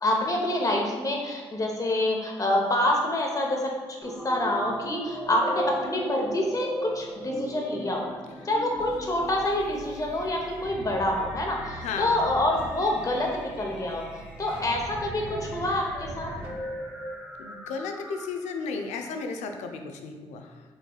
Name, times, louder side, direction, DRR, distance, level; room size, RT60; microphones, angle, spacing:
voice 1, 0.0-3.7 4.0-8.1 8.4-16.3, left 1 dB, 30° left, 0 dB, 0.8 m, -27 dB
sound 1, 4.0-18.6, right 1 dB, ahead, 0.8 m, -38 dB
sound 2, 8.8-16.5, right 2 dB, 50° right, 1.1 m, -42 dB
voice 2, 11.8-12.2 17.4-20.6, left 4 dB, 85° left, 5 dB, 0.4 m, -34 dB
3.9 x 3.2 x 2.3 m, 1.4 s
supercardioid pair, 60°, 12 cm